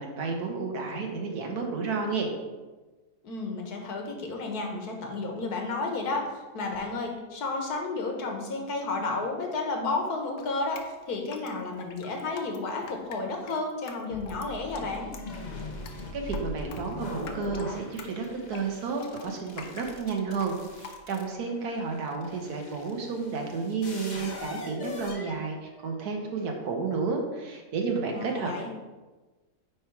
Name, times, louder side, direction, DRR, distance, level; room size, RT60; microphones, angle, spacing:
voice 1, 0.0-2.3 16.1-28.7, right 4 dB, 80° right, 2 dB, 1.6 m, -31 dB
voice 2, 3.2-15.1 28.0-28.7, left 3 dB, 85° left, 2 dB, 1.6 m, -32 dB
Drip, 10.4-21.4, left 5 dB, 60° left, 1.0 m, -46 dB
sound 1, 14.1-26.1, left 2 dB, 40° left, 0.6 m, -42 dB
9.3 x 3.4 x 4.5 m, 1.2 s
omnidirectional pair, 1.6 m